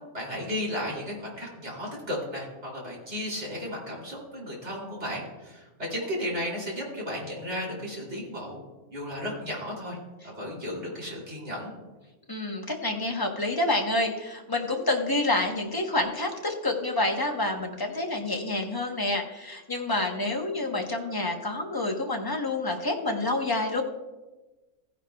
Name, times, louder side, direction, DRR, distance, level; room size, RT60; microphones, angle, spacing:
voice 1, 0.1-8.6 8.9-10.0 10.2-11.7, equal, 50° right, -3 dB, 3.2 m, -34 dB
voice 2, 12.3-23.8, left 2 dB, 20° left, 2 dB, 0.8 m, -28 dB
16.0 x 10.0 x 2.3 m, 1.2 s
omnidirectional pair, 1.5 m